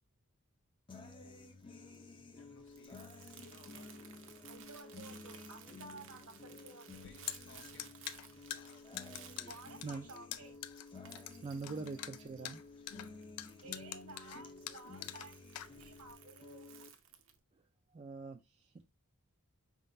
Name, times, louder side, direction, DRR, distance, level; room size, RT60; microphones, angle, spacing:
sound 1, 0.9-16.9, left 3 dB, 20° left, 0.5 m, -53 dB
Crumpling crinkling, 1.0-17.4, right 9 dB, 60° right, 0.7 m, -59 dB
voice 1, 2.2-4.9 6.9-8.0 8.5-8.9 12.9-13.1 14.2-14.5 14.8-15.1, left 3 dB, 55° left, 0.8 m, -62 dB
voice 2, 3.2-3.6 4.5-7.1 9.4-10.6 13.6-16.9, right 3 dB, 75° right, 1.3 m, -54 dB
sound 2, 6.9-16.1, left 13 dB, 90° left, 0.4 m, -46 dB
voice 3, 9.4-10.1 11.4-12.6 17.9-18.9, right 4 dB, 30° right, 0.3 m, -44 dB
4.7 x 3.7 x 2.6 m
head